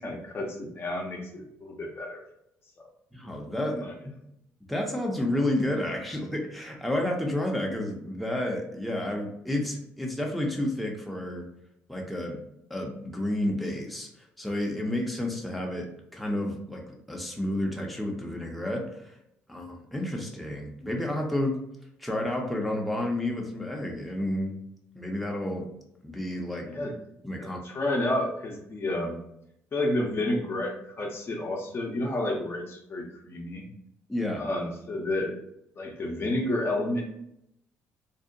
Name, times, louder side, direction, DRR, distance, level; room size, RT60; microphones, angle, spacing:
voice 1, 0.0-2.2 3.7-3.9 26.6-27.0 27.4-29.2 29.7-33.7 34.4-35.4 35.8-37.0, left 1 dB, 40° left, 1 dB, 0.6 m, -30 dB
voice 2, 3.1-3.9 4.7-11.5 11.9-12.4 12.7-19.2 19.5-21.6 22.0-24.5 24.9-25.7 26.0-26.7 27.2-27.6 34.1-34.5, left 1 dB, ahead, 0 dB, 0.6 m, -30 dB
2.6 x 2.1 x 2.6 m, 0.78 s
supercardioid pair, 60°, 6 cm